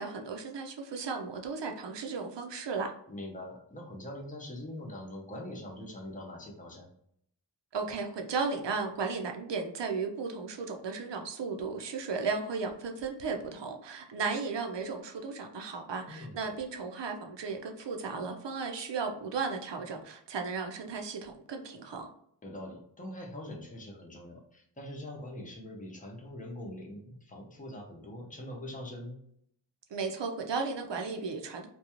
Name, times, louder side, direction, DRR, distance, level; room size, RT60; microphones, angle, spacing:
voice 1, 0.0-2.9 7.7-22.1 29.9-31.7, right 4 dB, 70° right, 4 dB, 0.6 m, -35 dB
voice 2, 3.1-6.9 16.1-16.4 22.4-29.2, left 1 dB, 20° left, -2 dB, 0.7 m, -43 dB
2.5 x 2.3 x 2.9 m, 0.68 s
wide cardioid pair, 70°, 45 cm